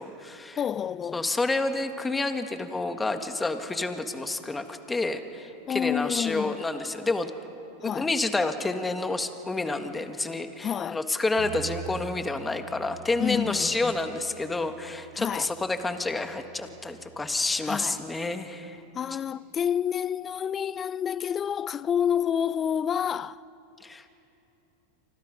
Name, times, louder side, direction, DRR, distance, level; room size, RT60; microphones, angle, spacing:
voice 1, 0.0-0.6 1.1-7.3 7.8-18.8 23.8-24.1, left 3 dB, 15° left, 1.7 m, -29 dB
voice 2, 0.6-1.3 5.7-6.6 7.8-8.1 10.6-11.0 13.2-13.9 15.1-15.5 17.6-18.0 18.9-23.4, left 8 dB, 30° left, 0.5 m, -29 dB
Bass guitar, 11.4-17.6, right 9 dB, 70° right, 2.4 m, -46 dB
29.0 x 25.0 x 5.4 m
hypercardioid pair, 100°, 0 cm